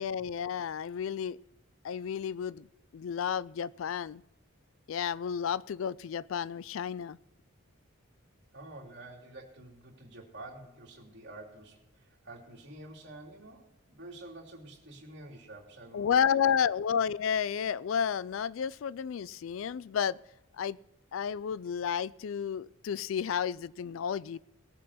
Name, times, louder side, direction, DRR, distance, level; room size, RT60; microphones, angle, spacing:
voice 1, 0.0-1.4 1.8-2.7 2.9-4.2 4.9-7.2 15.9-20.2 20.6-20.8 21.1-24.4, left 7 dB, 65° left, 21 dB, 0.3 m, -31 dB
voice 2, 8.5-16.4, right 2 dB, 55° right, 0 dB, 2.7 m, -49 dB
19.0 x 7.5 x 4.1 m, 0.89 s
head